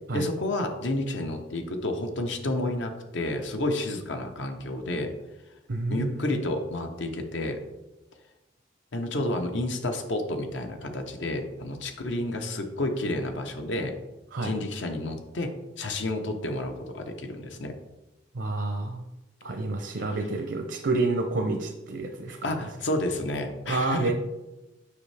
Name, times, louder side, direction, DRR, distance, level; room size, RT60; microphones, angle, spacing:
voice 1, 0.1-5.1 5.9-7.6 8.9-13.9 14.4-15.5 15.8-17.7 22.4-24.1, left 1 dB, 80° left, 5 dB, 0.9 m, -30 dB
voice 2, 5.7-6.4 14.3-14.5 18.3-19.0 19.4-22.4 23.7-24.1, right 2 dB, 70° right, 4 dB, 0.6 m, -29 dB
6.9 x 5.4 x 3.4 m, 1.0 s
head